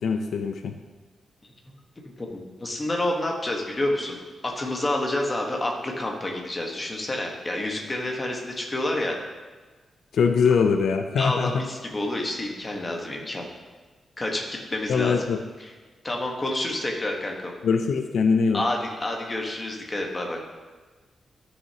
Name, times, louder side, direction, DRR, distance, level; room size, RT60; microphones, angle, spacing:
voice 1, 0.0-0.7 10.1-11.6 14.9-15.4 17.6-18.6, left 5 dB, 75° left, 6 dB, 0.5 m, -22 dB
voice 2, 2.2-9.2 11.2-13.4 14.2-15.3 15.6-15.7 16.0-17.5 18.5-20.4, left 1 dB, 20° left, 0 dB, 1.3 m, -29 dB
13.0 x 6.5 x 2.9 m, 1.4 s
wide cardioid pair, 150°, 0 cm